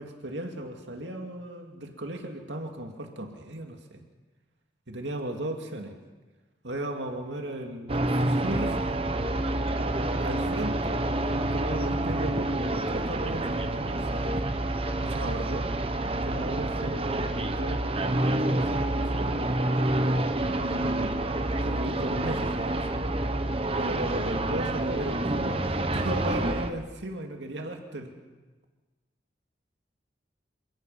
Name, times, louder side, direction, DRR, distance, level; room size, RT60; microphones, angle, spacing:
voice 1, 0.0-4.0 4.9-5.9 6.6-8.8 10.2-14.2 15.0-15.7 16.2-19.6 20.6-21.2 21.6-22.9 23.8-28.1, right 1 dB, 85° right, 3 dB, 2.3 m, -36 dB
sound 1, 7.9-26.7, right 1 dB, 30° right, 1.0 m, -28 dB
27.5 x 17.0 x 5.7 m, 1.3 s
head